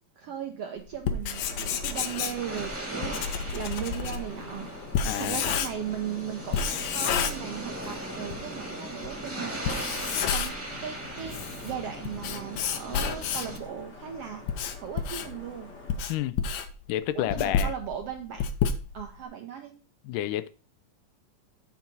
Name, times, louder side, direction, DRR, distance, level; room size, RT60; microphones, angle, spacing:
voice 1, 0.2-3.2 3.5-4.7 5.1-11.4 11.6-14.4 14.8-15.7 17.1-18.5 18.9-19.7, right 9 dB, 75° right, 1.4 m, -37 dB
Writing, 0.9-6.0 6.5-8.0 8.3-8.4 9.0-9.1 9.6-10.7 11.1-13.6 14.2-19.2, left 7 dB, 75° left, 1.9 m, -30 dB
sound 1, 1.3-13.6, right 1 dB, 10° right, 1.0 m, -39 dB
Vehicle horn car horn honking / Traffic noise roadway noise, 1.4-16.0, left 3 dB, 40° left, 1.0 m, -46 dB
voice 2, 5.0-5.4 16.1-16.4 16.9-17.7 20.0-20.5, left 13 dB, 90° left, 2.2 m, -30 dB
8.7 x 4.0 x 5.9 m
omnidirectional pair, 3.7 m